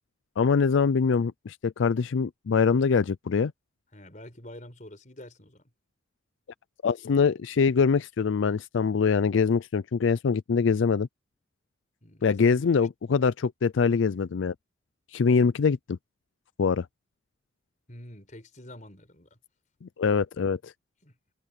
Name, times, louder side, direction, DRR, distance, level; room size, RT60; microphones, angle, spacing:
voice 1, 0.4-3.5 6.8-11.1 12.2-14.5 15.1-16.0 16.6-16.9 19.8-20.7, left 5 dB, 85° left, 0.4 m, -24 dB
voice 2, 3.9-5.6 12.0-12.6 17.9-19.4 21.0-21.1, left 1 dB, 40° left, 5.1 m, -47 dB
head